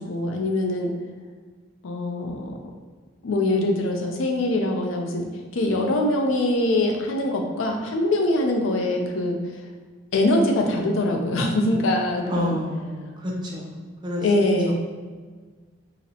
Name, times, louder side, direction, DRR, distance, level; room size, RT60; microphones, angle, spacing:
voice 1, 0.0-0.9 1.8-2.5 3.2-5.2 5.5-9.4 10.1-12.6 14.2-14.7, left 1 dB, 80° left, 2 dB, 0.5 m, -23 dB
voice 2, 12.3-13.6 14.0-14.2, left 1 dB, 25° right, -2 dB, 0.5 m, -29 dB
3.9 x 2.0 x 2.8 m, 1.4 s
head